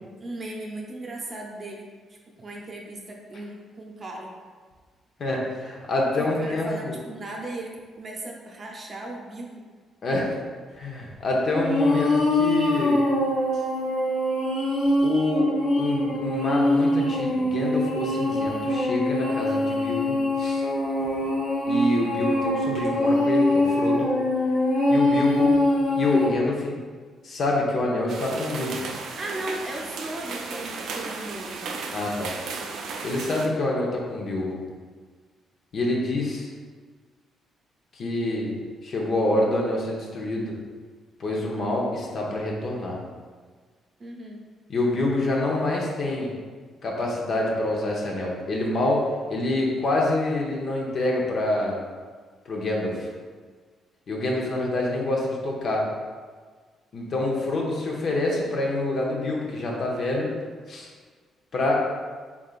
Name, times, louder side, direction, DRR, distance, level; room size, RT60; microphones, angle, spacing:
voice 1, 0.0-4.3 6.2-9.7 29.0-31.6 44.0-44.4, right 1 dB, 40° right, 0 dB, 0.7 m, -37 dB
voice 2, 5.2-6.9 10.0-10.4 10.7-13.0 15.0-15.5 15.8-20.6 21.7-24.1 24.9-25.5 25.9-26.8 27.2-28.8 31.9-32.3 33.0-34.6 35.7-36.5 37.9-38.6 38.8-40.6 41.2-43.0 44.7-46.3 46.8-51.8 52.4-53.1 54.1-55.9 56.9-60.3 60.7-60.9 61.5-61.8, left 2 dB, 55° left, -2 dB, 0.8 m, -26 dB
sound 1, 11.5-26.3, left 1 dB, 90° left, 1.1 m, -23 dB
sound 2, 28.1-33.5, right 4 dB, 75° right, 0.4 m, -35 dB
3.8 x 3.5 x 2.4 m, 1.5 s
cardioid pair, 90°, 0 cm